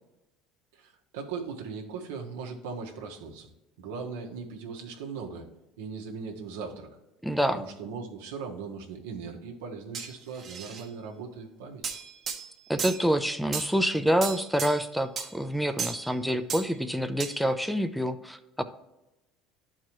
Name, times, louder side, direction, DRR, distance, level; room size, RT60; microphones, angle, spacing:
voice 1, 0.7-3.5 3.8-5.5 5.8-6.9 7.5-11.9, right 5 dB, 90° right, 2 dB, 1.2 m, -39 dB
voice 2, 7.2-7.6 12.7-18.6, equal, ahead, 10 dB, 0.5 m, -27 dB
sound 1, 9.9-10.8 11.8-13.1 13.5-13.8 14.2-14.9 15.2-15.3 15.8-16.1 16.5-16.7 17.2-17.4, right 6 dB, 45° right, 1.0 m, -35 dB
11.5 x 4.6 x 3.0 m, 0.94 s
supercardioid pair, 90°, 0 cm